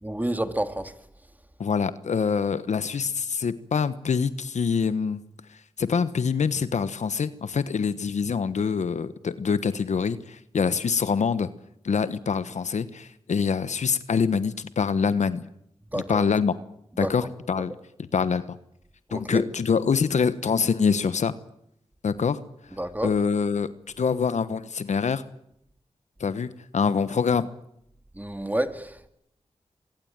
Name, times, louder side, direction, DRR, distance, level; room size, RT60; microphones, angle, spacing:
voice 1, 0.0-0.9 15.9-16.2 17.0-17.1 19.1-19.4 22.8-23.1 28.2-29.1, right 1 dB, 15° right, 8 dB, 2.7 m, -29 dB
voice 2, 1.6-5.2 5.8-11.5 11.8-15.5 15.9-16.6 17.0-17.7 18.0-18.6 19.1-21.3 22.0-22.4 23.0-23.7 24.0-25.2 26.2-27.5, left 6 dB, 80° left, 14 dB, 1.2 m, -25 dB
24.0 x 22.5 x 9.0 m, 0.77 s
cardioid pair, 45°, 12 cm